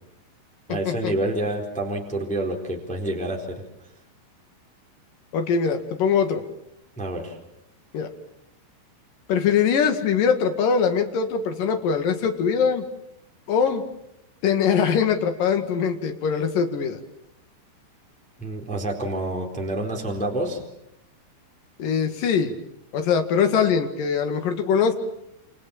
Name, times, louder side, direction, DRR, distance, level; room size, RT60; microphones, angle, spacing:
voice 1, 0.7-3.6 7.0-7.4 18.4-20.6, right 1 dB, ahead, 1 dB, 3.3 m, -28 dB
voice 2, 5.3-6.4 7.9-8.1 9.3-12.9 13.5-13.8 14.4-17.0 21.8-22.5 22.9-24.9, left 6 dB, 55° left, 6 dB, 3.3 m, -22 dB
29.0 x 27.5 x 7.3 m, 0.82 s
omnidirectional pair, 5.2 m